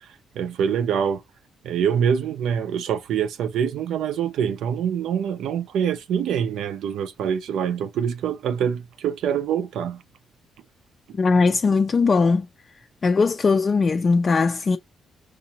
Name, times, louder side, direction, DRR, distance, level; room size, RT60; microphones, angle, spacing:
voice 1, 0.4-1.2 1.6-10.0, right 8 dB, 80° right, 0.5 m, -25 dB
voice 2, 11.2-12.5 13.0-14.8, left 4 dB, 40° left, 0.3 m, -19 dB
4.7 x 2.5 x 2.8 m
cardioid pair, 90°, 0 cm